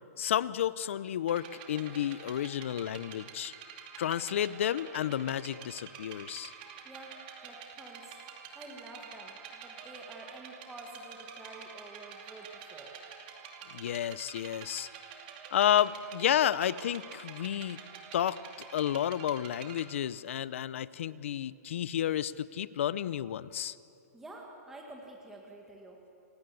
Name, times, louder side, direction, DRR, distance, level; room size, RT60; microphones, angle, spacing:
voice 1, 0.2-3.5 4.0-6.5 13.7-14.9 15.5-17.8 18.1-23.8, left 10 dB, 45° left, 18 dB, 0.7 m, -31 dB
sound 1, 1.3-19.8, right 7 dB, 30° right, 2.6 m, -48 dB
voice 2, 6.8-7.2 7.4-8.1 8.6-12.9 24.1-26.0, right 2 dB, 5° right, -1 dB, 1.8 m, -49 dB
28.5 x 18.5 x 8.4 m, 2.7 s
hypercardioid pair, 170°, 9 cm